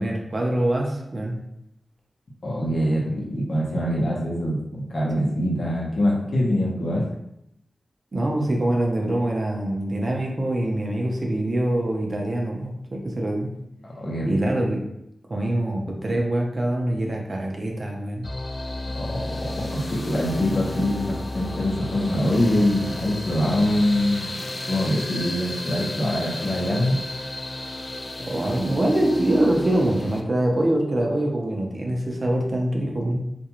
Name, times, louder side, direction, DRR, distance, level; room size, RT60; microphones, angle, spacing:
voice 1, 0.0-1.4 5.2-5.3 8.1-13.5 14.3-14.8 15.3-18.3 28.3-33.2, right 1 dB, 45° right, 0 dB, 0.6 m, -24 dB
voice 2, 2.4-7.0 14.0-14.6 18.9-19.1 19.4-24.3 24.7-27.0, left 1 dB, 70° left, -3 dB, 0.8 m, -24 dB
sound 1, 18.2-30.2, left 2 dB, 45° left, 0.3 m, -32 dB
2.5 x 2.2 x 2.9 m, 0.79 s
wide cardioid pair, 70°, 0 cm